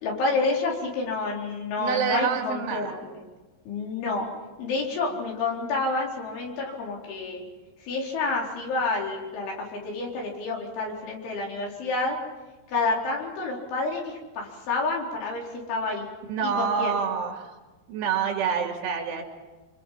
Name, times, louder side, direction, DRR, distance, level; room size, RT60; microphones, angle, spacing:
voice 1, 0.0-3.2 3.7-4.3 4.6-7.4 7.8-12.2 12.7-16.1 16.4-16.9, left 3 dB, 80° left, -2 dB, 6.6 m, -29 dB
voice 2, 1.8-2.9 16.3-17.5 17.9-19.2, right 6 dB, 85° right, 2 dB, 4.7 m, -27 dB
26.5 x 26.5 x 5.8 m, 1.2 s
omnidirectional pair, 5.4 m